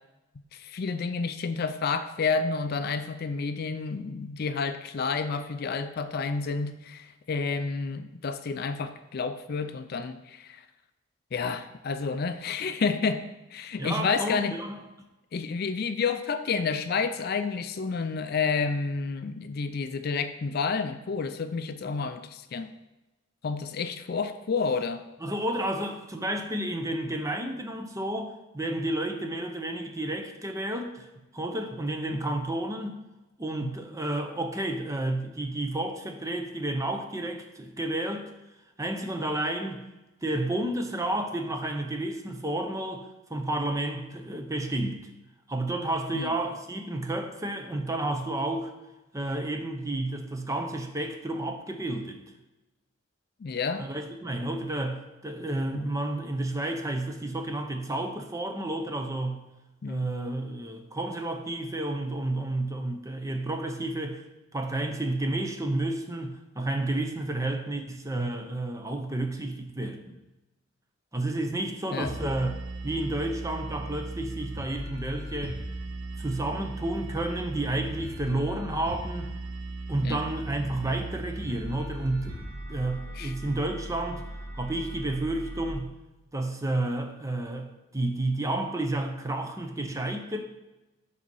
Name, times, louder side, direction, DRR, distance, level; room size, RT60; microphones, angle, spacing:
voice 1, 0.5-10.6 11.3-14.6 15.3-22.7 23.4-25.0 32.1-32.2 33.6-33.7 46.1-46.3 53.4-53.9 55.7-55.9 59.8-60.0 71.9-72.1 80.0-80.2 83.1-83.3, left 5 dB, 50° left, 10 dB, 0.4 m, -30 dB
voice 2, 13.8-14.8 25.2-31.1 31.3-33.0 33.4-38.3 38.8-39.8 40.2-45.1 45.5-48.7 49.1-52.2 53.8-59.5 59.9-64.2 64.5-70.2 71.1-72.6 72.8-75.6 76.2-79.3 79.9-82.4 82.7-84.2 84.6-85.9 86.3-90.4, right 1 dB, 15° right, 5 dB, 0.7 m, -31 dB
sound 1, 72.0-85.7, right 1 dB, 70° right, 1.4 m, -38 dB
7.7 x 4.1 x 5.4 m, 1.0 s
head